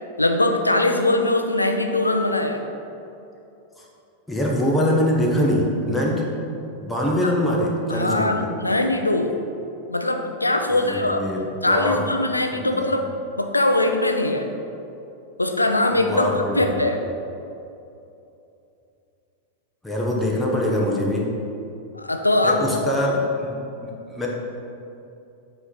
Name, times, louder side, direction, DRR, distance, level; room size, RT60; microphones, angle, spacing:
voice 1, 0.2-2.6 7.9-9.3 9.9-11.2 11.6-13.0 13.4-14.5 15.4-16.3 16.6-17.0 21.9-22.9, left 2 dB, 85° left, 5 dB, 0.5 m, -21 dB
voice 2, 4.3-6.3 6.8-8.5 10.7-12.0 12.5-12.9 15.9-16.6 19.8-21.3 22.4-24.3, left 1 dB, 5° left, -3 dB, 1.0 m, -23 dB
7.9 x 3.1 x 5.5 m, 2.7 s
figure-of-eight pair, 90°, 0 cm